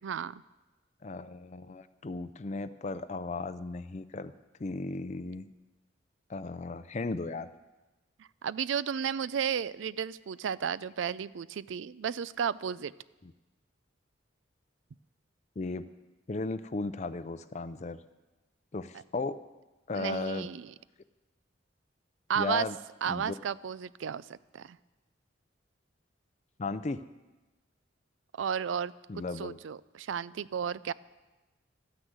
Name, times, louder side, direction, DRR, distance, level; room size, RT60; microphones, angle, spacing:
voice 1, 0.0-0.4 8.4-12.9 20.0-20.7 22.3-22.7 23.0-24.8 28.4-28.9 29.4-30.9, right 7 dB, 90° right, 19 dB, 0.4 m, -33 dB
voice 2, 1.0-4.3 4.6-5.5 6.3-7.5 13.2-13.3 15.6-15.9 16.3-18.0 18.7-19.4 19.9-20.5 22.4-22.8 23.1-23.4 26.6-27.0 29.1-29.6, left 3 dB, 35° left, 13 dB, 0.5 m, -35 dB
12.5 x 9.8 x 8.0 m, 1.1 s
head